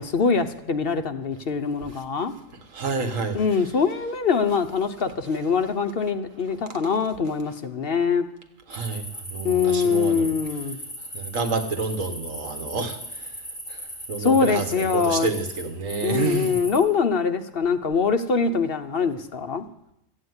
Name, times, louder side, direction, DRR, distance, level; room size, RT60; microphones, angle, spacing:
voice 1, 0.0-2.3 3.3-8.3 9.4-10.8 14.2-15.3 16.0-19.7, left 5 dB, 50° left, 9 dB, 0.9 m, -23 dB
voice 2, 2.7-3.4 8.7-9.0 9.3-10.3 11.1-13.0 14.1-16.6, right 4 dB, 80° right, 7 dB, 1.9 m, -28 dB
sound 1, 8.7-16.8, equal, 35° left, 6.8 m, -37 dB
13.5 x 8.8 x 9.5 m, 0.82 s
omnidirectional pair, 1.3 m